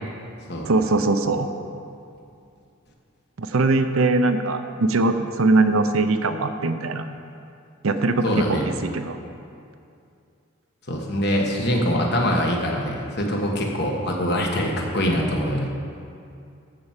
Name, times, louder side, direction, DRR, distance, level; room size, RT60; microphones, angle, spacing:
voice 1, 0.7-1.5 3.4-7.1 7.8-9.2, right 3 dB, 80° right, 8 dB, 0.7 m, -21 dB
voice 2, 8.2-8.6 10.9-15.7, equal, 50° left, 0 dB, 1.4 m, -23 dB
13.0 x 4.6 x 7.3 m, 2.5 s
head